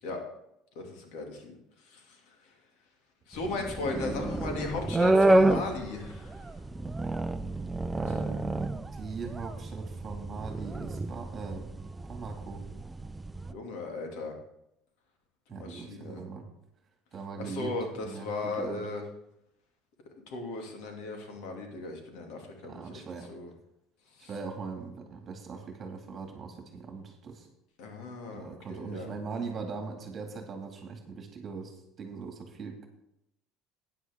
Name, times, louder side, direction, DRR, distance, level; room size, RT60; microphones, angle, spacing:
voice 1, 0.8-2.6 3.3-6.6 8.1-8.2 13.5-14.4 15.5-16.3 17.4-19.0 20.3-23.0 23.3-23.5 24.1-24.3 27.8-29.1, left 3 dB, 75° left, 2 dB, 2.5 m, -37 dB
sound 1, 3.4-13.5, right 2 dB, 10° right, 0.5 m, -29 dB
voice 2, 7.9-11.7 12.1-12.6 15.5-16.5 17.1-17.7 18.0-18.8 22.6-23.3 24.2-27.5 28.3-32.9, right 5 dB, 35° right, 3 dB, 2.1 m, -40 dB
12.5 x 9.7 x 3.6 m, 0.81 s
cardioid pair, 130°, 0 cm